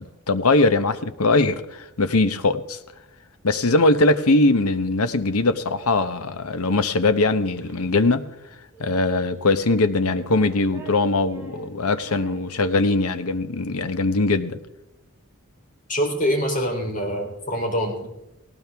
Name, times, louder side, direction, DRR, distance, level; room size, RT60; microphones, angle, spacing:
voice 1, 0.0-2.8 3.4-8.2 8.8-14.6, left 2 dB, 75° left, 12 dB, 1.0 m, -21 dB
Child speech kid speaking, 6.3-8.0 8.7-9.6 10.0-13.2, right 2 dB, 10° right, 6.8 m, -46 dB
voice 2, 15.9-18.1, equal, 40° left, 2 dB, 3.5 m, -24 dB
18.5 x 18.5 x 3.5 m, 0.92 s
head